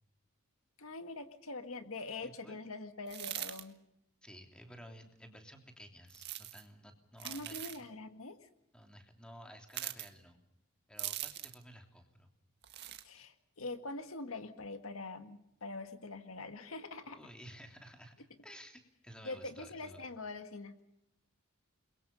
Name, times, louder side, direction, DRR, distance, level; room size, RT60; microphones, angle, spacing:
voice 1, 0.8-3.8 7.2-8.5 13.0-17.2 19.2-20.8, left 3 dB, 80° left, 8 dB, 1.9 m, -44 dB
voice 2, 2.2-2.6 4.2-7.9 8.7-10.4 10.9-12.3 13.2-13.3 17.1-20.0, equal, 5° left, 4 dB, 3.1 m, -54 dB
sound 1, 3.1-3.6 6.1-6.6 7.2-7.8 9.7-10.1 11.0-11.6 12.6-13.0, right 13 dB, 55° right, 1.7 m, -41 dB
29.0 x 22.5 x 5.4 m, 0.82 s
head